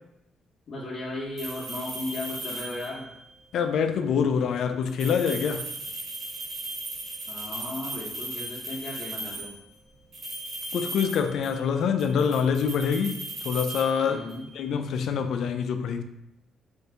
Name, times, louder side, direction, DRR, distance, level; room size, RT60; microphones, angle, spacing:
voice 1, 0.7-3.1 7.3-9.5 14.0-14.4, left 2 dB, 50° left, 0.8 m, -35 dB
sound 1, 1.4-3.1 4.9-9.6 10.1-11.7 12.0-14.5, right 2 dB, 60° right, 1.0 m, -37 dB
voice 2, 3.5-5.7 10.7-13.2 13.4-14.2 14.6-16.0, left 6 dB, 70° left, 0.3 m, -25 dB
2.7 x 2.5 x 3.3 m
cardioid pair, 90°, 0 cm